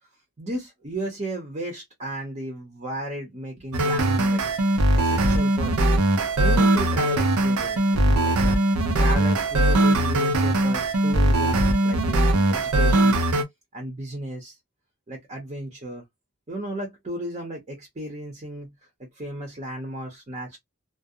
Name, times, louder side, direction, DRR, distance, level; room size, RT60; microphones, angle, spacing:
voice 1, 0.4-6.0 6.4-8.6 9.0-13.2 13.7-14.5 15.1-16.0 16.5-18.7 19.2-20.6, right 1 dB, 30° right, 0.7 m, -34 dB
sound 1, 3.7-13.4, right 1 dB, 80° right, 0.6 m, -20 dB
2.4 x 2.0 x 2.6 m
head